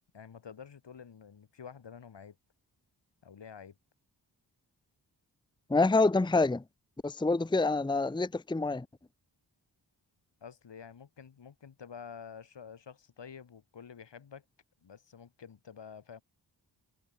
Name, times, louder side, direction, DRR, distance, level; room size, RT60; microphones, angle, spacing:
voice 1, 0.1-2.4 3.2-3.8 10.4-14.4 14.8-16.2, left 7 dB, 80° left, 5.2 m, -49 dB
voice 2, 5.7-6.6 7.0-8.9, left 3 dB, 10° left, 0.7 m, -26 dB
cardioid pair, 60°, 42 cm